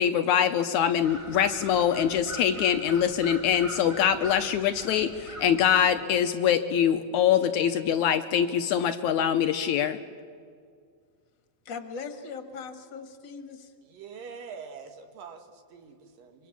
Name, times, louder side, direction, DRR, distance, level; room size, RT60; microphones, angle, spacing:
voice 1, 0.0-10.0, left 9 dB, 75° left, 9 dB, 1.9 m, -24 dB
sound 1, 1.0-6.0, equal, 20° right, 0.8 m, -42 dB
voice 2, 11.7-13.7, left 5 dB, 40° left, 7 dB, 1.9 m, -39 dB
voice 3, 13.8-16.5, right 6 dB, 75° right, 6 dB, 3.4 m, -44 dB
26.0 x 25.0 x 7.3 m, 2.1 s
omnidirectional pair, 4.0 m